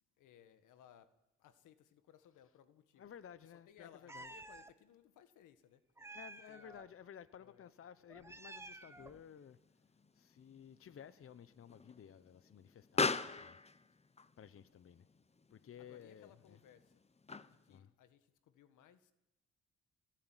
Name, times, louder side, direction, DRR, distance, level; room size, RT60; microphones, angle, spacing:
voice 1, 0.2-3.1 3.5-5.8 6.5-6.9 7.4-7.7 15.8-17.0 17.5-19.1, left 9 dB, 85° left, 1.7 m, -63 dB
voice 2, 3.0-4.3 6.1-9.6 10.1-13.6 14.4-15.1 15.5-16.6 17.7-17.9, left 8 dB, 45° left, 1.0 m, -55 dB
Meow, 4.1-4.7 6.0-6.9 8.1-9.2, right 2 dB, 10° right, 1.3 m, -52 dB
Explosion, 8.8-17.8, left 4 dB, 20° left, 0.9 m, -43 dB
23.0 x 20.0 x 9.2 m
cardioid pair, 90°, 30 cm